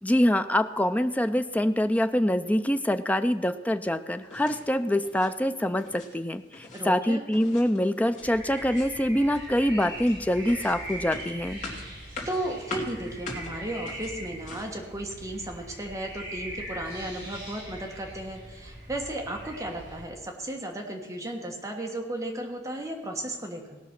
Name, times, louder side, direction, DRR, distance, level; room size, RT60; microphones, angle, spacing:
voice 1, 0.0-11.6, left 1 dB, 10° left, 9 dB, 0.5 m, -25 dB
sound 1, 4.3-4.7 5.0-5.3 5.7-6.1 6.4-6.8 7.3-8.3 8.6-9.0 9.3-14.8, left 3 dB, 45° left, 2.4 m, -42 dB
voice 2, 6.7-7.2 12.3-23.8, right 1 dB, 20° right, 1 dB, 1.4 m, -35 dB
sound 2, 8.2-20.0, right 1 dB, 60° right, 4.5 m, -41 dB
18.0 x 6.0 x 5.9 m, 1.2 s
head